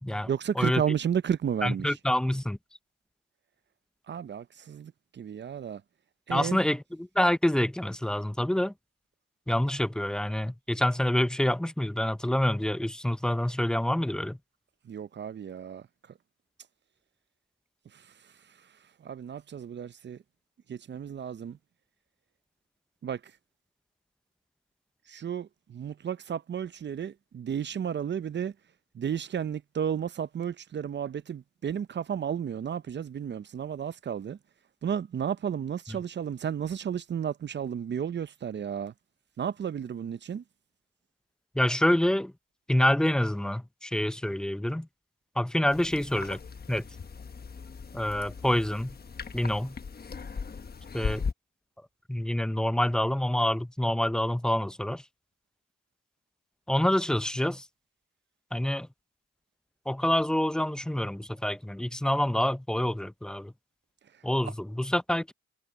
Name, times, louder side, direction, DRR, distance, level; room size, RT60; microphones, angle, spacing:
voice 1, 0.3-1.9 4.1-5.8 6.3-6.6 14.9-15.8 19.0-20.2 20.7-21.6 23.0-23.2 25.1-28.5 28.9-34.4 34.8-38.9 39.4-40.4, right 8 dB, 35° right, 0.6 m, -32 dB
voice 2, 1.6-2.6 6.3-8.7 9.5-14.4 35.9-36.0 41.5-42.3 42.7-44.9 45.4-46.4 46.7-46.8 47.9-49.0 49.3-49.8 50.9-51.2 52.1-55.0 56.7-57.7 58.5-58.9 59.9-63.5 64.2-65.3, left 1 dB, ahead, 0.5 m, -27 dB
sound 1, 45.7-51.3, left 5 dB, 30° left, 1.3 m, -38 dB
cardioid pair, 90°, 30 cm